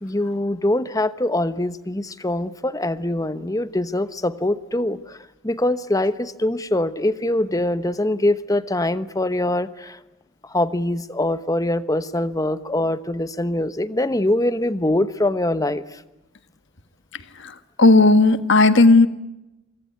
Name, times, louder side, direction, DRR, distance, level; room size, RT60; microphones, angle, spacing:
voice 1, 0.0-5.2 5.4-10.0 10.4-16.0, left 1 dB, 15° left, 13 dB, 1.0 m, -23 dB
voice 2, 17.8-19.1, left 2 dB, 60° left, 10 dB, 1.6 m, -13 dB
26.0 x 24.5 x 9.4 m, 0.95 s
head